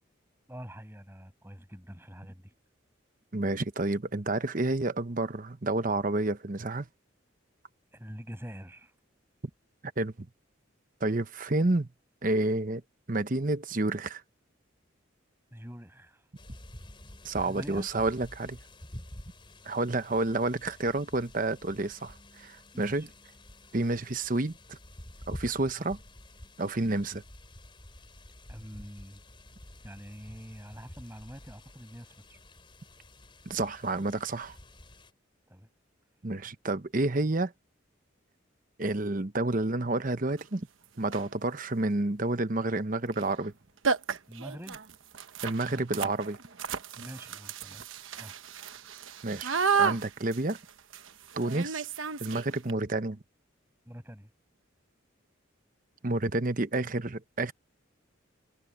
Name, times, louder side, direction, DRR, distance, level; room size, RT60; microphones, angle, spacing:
voice 1, 0.5-2.5 7.9-8.9 15.5-16.3 17.4-17.9 22.7-23.1 23.8-24.1 25.8-25.9 28.5-29.2 29.8-32.4 35.5-35.7 44.3-44.8 45.6-46.1 47.0-47.8 48.1-48.4 53.8-54.3, equal, 10° right, 7.9 m, -45 dB
voice 2, 3.3-6.9 10.0-10.1 11.0-11.9 12.2-12.8 13.1-14.2 17.2-18.6 19.6-23.1 23.7-24.8 25.3-26.0 26.6-27.2 33.5-34.6 36.2-37.5 38.8-40.7 41.0-43.5 45.4-46.4 47.0-47.1 49.2-49.5 49.8-50.6 51.4-51.9 52.2-53.2 56.0-57.5, right 2 dB, 40° right, 1.0 m, -29 dB
sound 1, 16.4-35.1, left 1 dB, 25° left, 4.3 m, -49 dB
sound 2, 40.4-40.5 41.0-41.4 43.1-43.3 43.5-43.6 43.8-52.7, right 6 dB, 80° right, 1.1 m, -33 dB
head